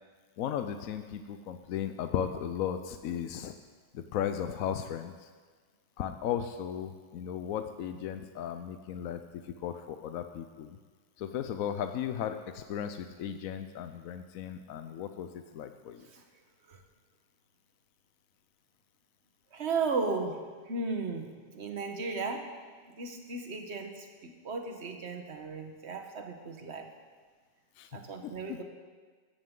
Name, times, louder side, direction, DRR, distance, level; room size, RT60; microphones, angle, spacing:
voice 1, 0.4-3.5 3.9-5.1 6.0-10.8 11.2-16.1 27.8-27.9 28.2-28.6, left 9 dB, 80° left, 8 dB, 1.1 m, -36 dB
voice 2, 19.5-22.5 22.9-26.9 27.9-28.6, right 4 dB, 55° right, 4 dB, 1.6 m, -35 dB
15.0 x 14.0 x 3.8 m, 1.5 s
omnidirectional pair, 1.4 m